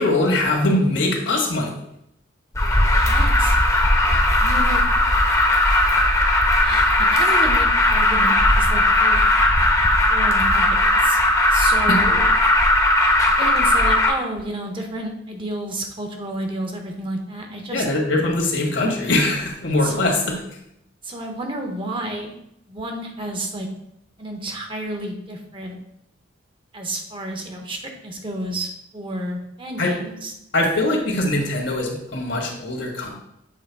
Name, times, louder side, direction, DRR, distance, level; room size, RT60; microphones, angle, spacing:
voice 1, 0.0-1.7 11.9-12.0 17.7-20.2 29.8-29.9 30.5-33.2, left 2 dB, 65° left, 1 dB, 1.5 m, -21 dB
Alarm, 2.6-14.1, left 1 dB, 15° left, 0.8 m, -17 dB
voice 2, 3.0-3.6 4.4-4.8 6.6-9.2 10.1-11.2 11.5-12.2 13.4-17.8 19.8-20.1 21.0-22.3 22.7-23.7 24.2-25.7 26.7-30.3, right 1 dB, 25° right, 3 dB, 0.8 m, -31 dB
7.5 x 3.3 x 4.6 m, 0.78 s
head